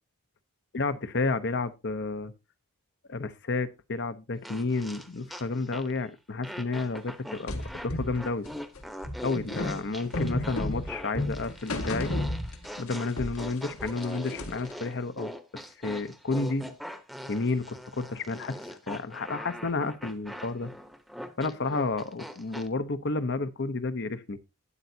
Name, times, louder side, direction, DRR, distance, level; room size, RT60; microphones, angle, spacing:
voice 1, 0.7-2.3 3.1-8.5 9.2-12.1 12.8-16.7 17.3-20.7 21.4-24.4, left 3 dB, 50° left, 0.8 m, -31 dB
sound 1, 4.4-6.0 6.4-22.7, equal, ahead, 0.9 m, -42 dB
sound 2, 7.5-12.9 13.2-14.7, left 1 dB, 70° left, 1.9 m, -33 dB
12.5 x 10.5 x 2.7 m
head